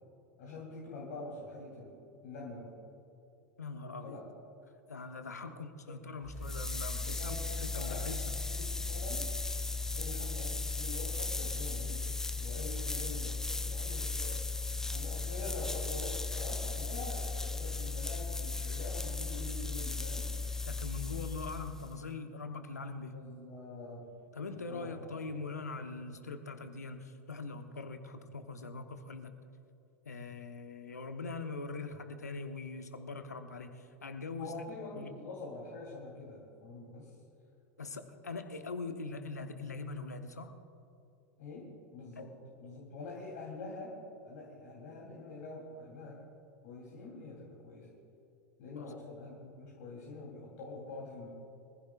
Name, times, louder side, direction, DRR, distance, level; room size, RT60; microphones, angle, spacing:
voice 1, 0.4-2.7 4.0-4.2 5.4-5.5 5.9-6.0 7.0-8.1 8.5-9.3 9.9-14.5 14.8-20.3 23.1-24.1 24.7-25.1 34.4-37.1 41.4-46.3 46.6-47.9 48.6-51.3, left 3 dB, 50° left, -5 dB, 3.4 m, -45 dB
voice 2, 3.6-4.2 4.9-8.3 20.7-23.1 24.3-29.3 30.0-34.5 35.0-35.1 37.8-40.5 48.7-48.9, left 3 dB, 80° left, 7 dB, 1.1 m, -42 dB
sound 1, 6.2-22.0, left 3 dB, 5° left, 0.4 m, -36 dB
25.0 x 15.0 x 2.5 m, 2.8 s
figure-of-eight pair, 85°, 9 cm